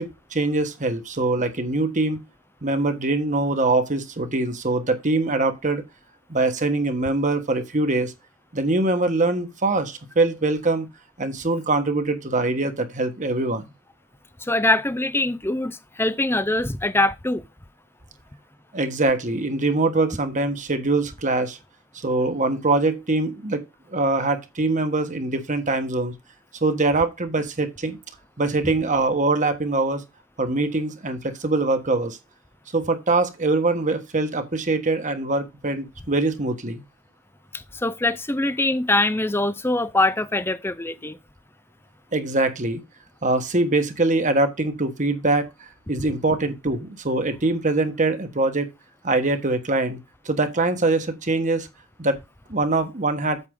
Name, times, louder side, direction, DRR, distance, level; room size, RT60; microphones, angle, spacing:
voice 1, 0.0-2.2 2.6-5.8 6.3-8.1 8.5-10.9 11.2-13.7 18.7-21.6 21.9-23.6 23.9-26.1 26.6-28.0 28.4-30.0 30.4-32.2 32.7-36.8 42.1-42.8 43.2-48.7 49.0-50.0 50.2-51.7 52.0-52.2 52.5-53.4, right 2 dB, 35° right, 1.4 m, -23 dB
voice 2, 14.4-17.4 37.5-41.2, left 2 dB, 10° left, 0.5 m, -23 dB
8.3 x 6.5 x 3.7 m
head